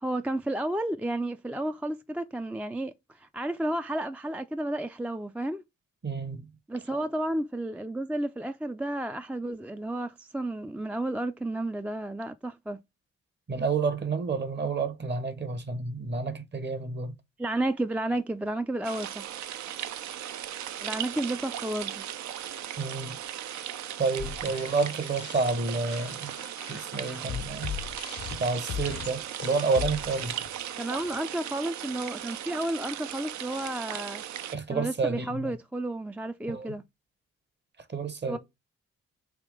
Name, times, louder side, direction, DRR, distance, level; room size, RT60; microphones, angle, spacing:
voice 1, 0.0-5.6 6.7-12.8 17.4-19.3 20.8-22.0 30.8-34.2 34.7-36.8 38.3-38.4, right 1 dB, 5° right, 0.3 m, -32 dB
voice 2, 6.0-6.4 13.5-17.1 22.8-23.2 24.0-26.3 26.7-27.7 28.4-30.3 34.5-35.5 36.5-36.7 37.9-38.4, right 4 dB, 35° right, 0.9 m, -29 dB
sound 1, 18.8-34.6, right 10 dB, 65° right, 0.5 m, -37 dB
sound 2, 24.2-31.2, left 9 dB, 50° left, 0.5 m, -39 dB
3.6 x 2.9 x 4.7 m
supercardioid pair, 50°, 31 cm